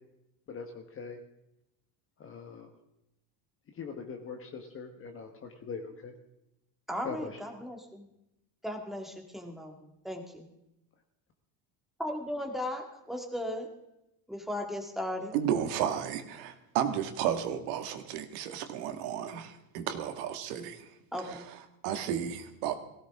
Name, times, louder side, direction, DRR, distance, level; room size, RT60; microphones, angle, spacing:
voice 1, 0.5-1.2 2.2-2.7 3.7-6.1 7.0-7.4, left 5 dB, 25° left, 3 dB, 1.3 m, -41 dB
voice 2, 6.9-8.1 8.6-10.5 12.0-13.7 14.3-15.3 21.1-21.5, left 1 dB, ahead, 2 dB, 2.0 m, -36 dB
voice 3, 15.3-20.9 21.3-21.4 21.8-22.8, right 9 dB, 75° right, 7 dB, 2.0 m, -33 dB
18.5 x 16.5 x 3.6 m, 0.86 s
cardioid pair, 145°, 47 cm